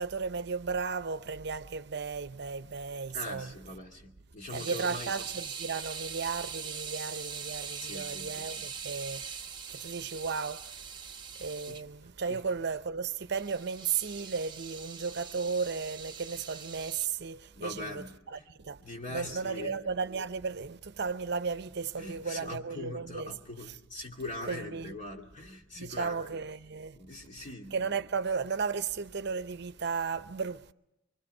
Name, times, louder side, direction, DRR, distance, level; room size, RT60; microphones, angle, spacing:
voice 1, 0.0-3.5 4.5-10.9 11.4-18.8 19.1-23.4 24.5-24.9 25.8-27.0 27.7-30.7, right 5 dB, 60° right, 0.7 m, -35 dB
voice 2, 3.1-5.1 7.8-8.7 11.7-11.8 12.3-12.4 17.6-18.5 18.8-19.9 22.0-26.4 26.9-27.9, left 2 dB, 40° left, 2.4 m, -42 dB
sound 1, 4.5-11.8 13.4-17.1, right 6 dB, 25° right, 1.2 m, -42 dB
25.5 x 24.5 x 5.4 m
head